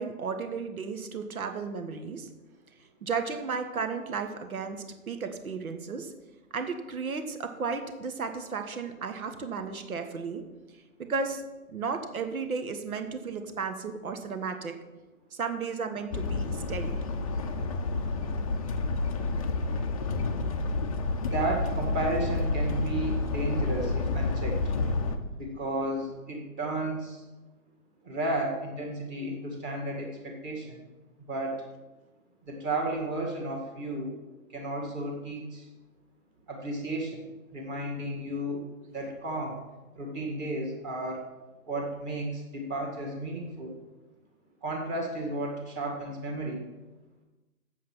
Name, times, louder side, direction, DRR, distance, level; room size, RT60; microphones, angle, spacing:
voice 1, 0.0-2.3 3.0-6.1 6.5-10.4 11.0-11.4 11.7-14.8 15.3-17.0, right 5 dB, 70° right, 7 dB, 1.4 m, -34 dB
sound 1, 16.1-25.2, left 3 dB, 25° left, 0.6 m, -29 dB
voice 2, 21.2-24.7 25.3-27.2 28.0-30.8 31.3-31.6 32.5-34.2 34.5-35.6 36.5-37.2 37.5-38.6 38.9-39.6 39.9-41.2 41.7-43.8 44.6-46.6, right 2 dB, 20° right, -1 dB, 1.7 m, -33 dB
7.7 x 7.4 x 6.0 m, 1.1 s
figure-of-eight pair, 140°, 43 cm